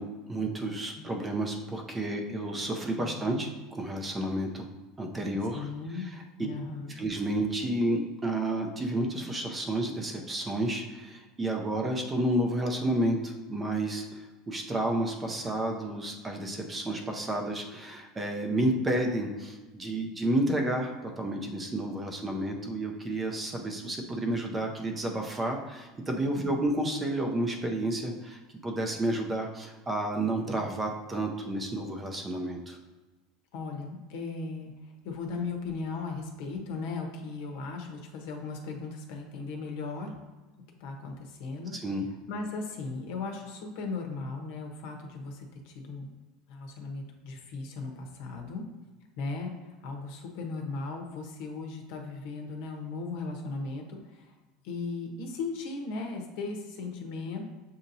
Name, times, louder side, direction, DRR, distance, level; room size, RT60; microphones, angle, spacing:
voice 1, 0.0-4.7 5.0-5.7 6.0-6.2 7.0-32.8 41.7-42.0, right 1 dB, 15° right, 2 dB, 0.5 m, -31 dB
voice 2, 3.0-3.5 5.5-6.1 6.4-7.0 26.3-26.6 33.5-40.1 40.8-41.7 42.3-46.1 46.5-48.6 49.2-54.4 54.6-57.5, left 3 dB, 65° left, 3 dB, 0.9 m, -37 dB
7.0 x 2.8 x 2.7 m, 1.2 s
cardioid pair, 160°, 0 cm